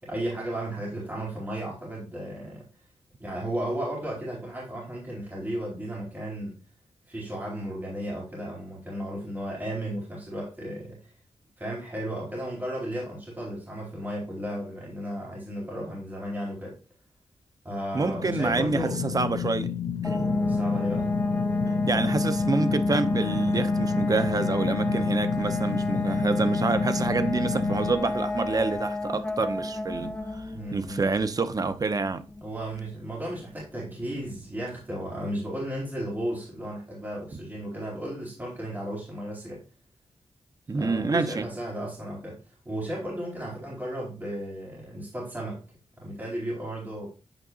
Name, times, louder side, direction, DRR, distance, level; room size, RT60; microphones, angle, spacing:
voice 1, 0.0-2.7 3.2-6.5 7.1-11.1 11.6-16.7 17.6-19.0 20.5-21.1 30.5-31.1 32.4-39.6 40.7-42.4 42.6-45.6 46.0-47.1, right 1 dB, 15° right, 3.9 m, -34 dB
voice 2, 17.9-19.7 20.0-20.3 21.7-30.4 30.7-32.2 40.7-41.5, right 3 dB, 35° right, 0.8 m, -27 dB
sound 1, 18.1-27.9, left 8 dB, 50° left, 0.7 m, -31 dB
sound 2, 20.0-34.6, left 2 dB, 15° left, 1.1 m, -29 dB
9.0 x 5.3 x 2.5 m
wide cardioid pair, 110°, 11 cm